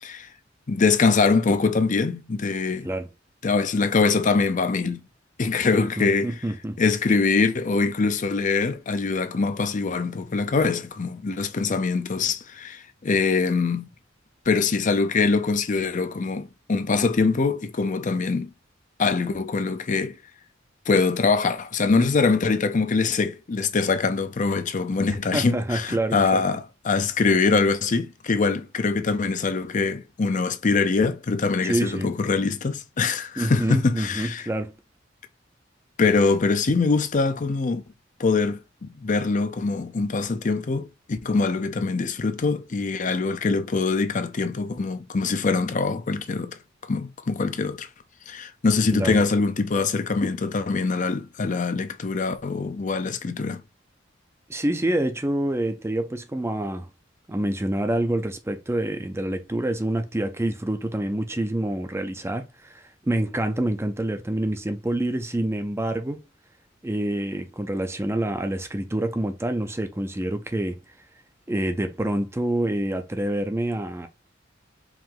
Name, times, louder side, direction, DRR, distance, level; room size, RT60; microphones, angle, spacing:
voice 1, 0.7-2.9 3.4-5.1 5.4-6.3 6.8-13.9 14.5-18.5 19.0-20.2 20.9-34.5 36.0-37.8 38.2-47.9 48.3-53.6, left 4 dB, 40° left, 0.5 m, -23 dB
voice 2, 6.0-6.8 25.3-26.4 31.6-32.1 33.4-34.8 48.9-49.2 54.5-56.9 57.3-66.2 66.8-71.0 71.5-74.1, right 1 dB, 15° right, 0.5 m, -27 dB
4.8 x 2.6 x 3.7 m
head